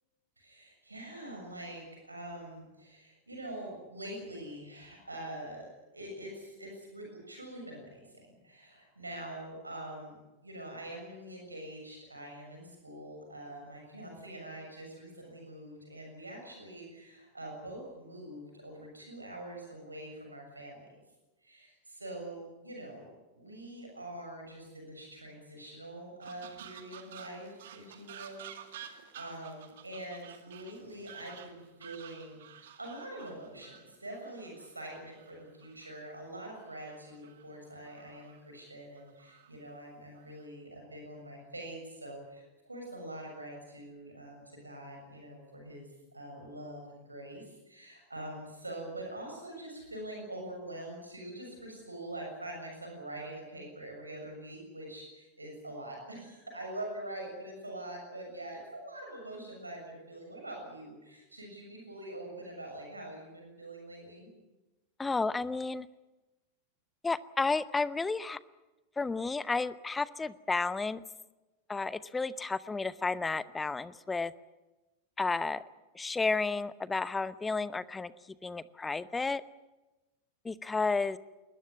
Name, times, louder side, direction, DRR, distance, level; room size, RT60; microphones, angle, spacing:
voice 1, 0.4-10.2 10.4-21.0 21.4-23.1 23.3-64.3, right 1 dB, 80° right, 2 dB, 6.9 m, -44 dB
sound 1, 26.2-36.0 36.4-37.5 37.8-38.4 39.0-39.5 40.1-40.5, right 9 dB, 60° right, 2.2 m, -52 dB
voice 2, 65.0-65.9 67.0-68.4 69.0-71.0 71.7-74.3 75.2-75.6 75.9-78.1 78.4-79.4 80.4-81.2, left 3 dB, 10° left, 18 dB, 0.9 m, -32 dB
21.5 x 20.0 x 9.6 m, 1.1 s
figure-of-eight pair, 90°, 0 cm